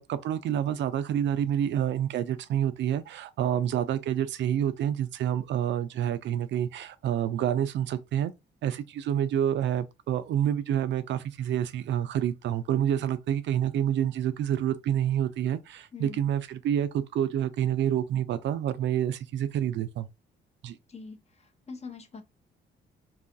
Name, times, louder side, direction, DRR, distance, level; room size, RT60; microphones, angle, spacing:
voice 1, 0.0-8.3 8.6-20.1 20.6-20.8, right 10 dB, 65° right, 0.4 m, -28 dB
voice 2, 20.9-22.2, left 4 dB, 35° left, 0.7 m, -43 dB
2.7 x 2.3 x 2.5 m
cardioid pair, 90°, 20 cm